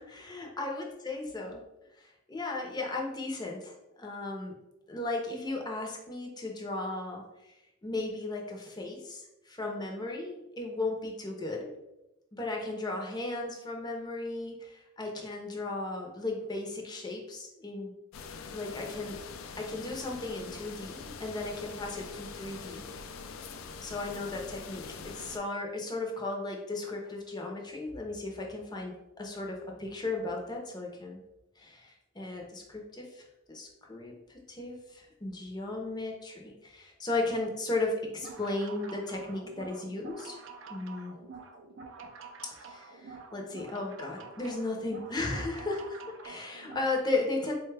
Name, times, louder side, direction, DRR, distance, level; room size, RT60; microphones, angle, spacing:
voice 1, 0.0-1.6 2.0-4.6 4.9-7.6 7.8-11.7 12.3-17.9 18.5-19.2 19.6-22.9 23.8-31.2 31.6-40.4 40.7-41.1 42.5-47.6, left 2 dB, 20° left, 0 dB, 0.6 m, -36 dB
sound 1, 18.1-25.4, left 5 dB, 80° left, 0.4 m, -44 dB
sound 2, 38.1-47.0, right 4 dB, 65° right, 0.4 m, -48 dB
4.2 x 2.2 x 3.2 m, 0.93 s
head